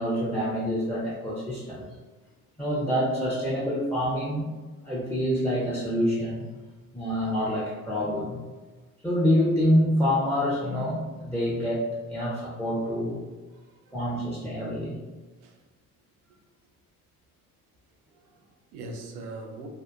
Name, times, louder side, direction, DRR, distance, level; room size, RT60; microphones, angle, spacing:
voice 1, 0.0-1.8 2.6-4.5 4.8-6.5 6.9-8.4 9.0-11.8 12.1-13.2 13.9-15.0, equal, 5° left, -6 dB, 0.6 m, -26 dB
voice 2, 13.5-14.1 15.4-15.6 18.1-19.7, right 2 dB, 85° right, 2 dB, 0.6 m, -43 dB
2.7 x 2.1 x 2.2 m, 1.3 s
hypercardioid pair, 60°, 43 cm